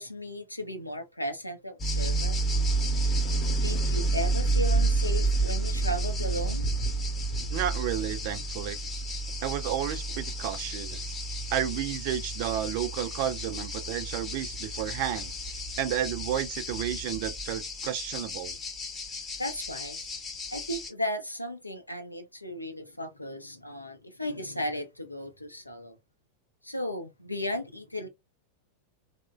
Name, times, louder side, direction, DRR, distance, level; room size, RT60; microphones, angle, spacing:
voice 1, 0.0-2.4 3.6-6.7 19.4-20.1 20.5-26.0 26.6-28.1, left 1 dB, 85° left, 0.5 m, -35 dB
sound 1, 1.8-20.9, right 2 dB, 20° left, 0.7 m, -30 dB
voice 2, 7.5-8.8 9.4-11.1 11.5-15.3 15.8-18.6, right 11 dB, 45° right, 0.3 m, -32 dB
2.9 x 2.1 x 2.3 m
figure-of-eight pair, 90°, 0 cm